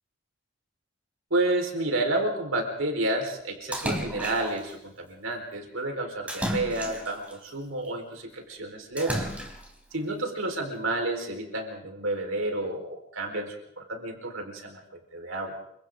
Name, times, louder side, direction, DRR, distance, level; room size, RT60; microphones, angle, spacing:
voice 1, 1.3-9.3 9.9-14.8 15.1-15.5, right 2 dB, 70° right, 3 dB, 4.7 m, -30 dB
Splash splatter, 3.7-4.7 6.3-7.3 9.0-9.8, equal, 5° right, 3.2 m, -32 dB
29.0 x 25.5 x 3.9 m, 0.70 s
head